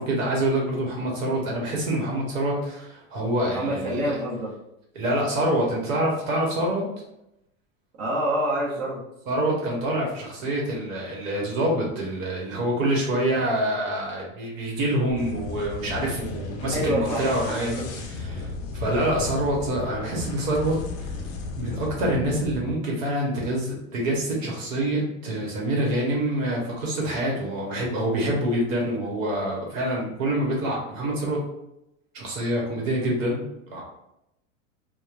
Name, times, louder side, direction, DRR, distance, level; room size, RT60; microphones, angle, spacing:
voice 1, 0.0-4.2 4.9-6.8 9.3-21.1 21.6-31.4 32.1-33.8, right 1 dB, 70° right, -2 dB, 1.1 m, -26 dB
voice 2, 3.4-4.5 8.0-9.0 16.7-17.3 17.7-18.0, right 1 dB, 40° right, -5 dB, 1.0 m, -27 dB
sound 1, 15.1-22.7, left 3 dB, 40° left, 0.5 m, -35 dB
2.9 x 2.2 x 2.4 m, 0.84 s
hypercardioid pair, 110°, 41 cm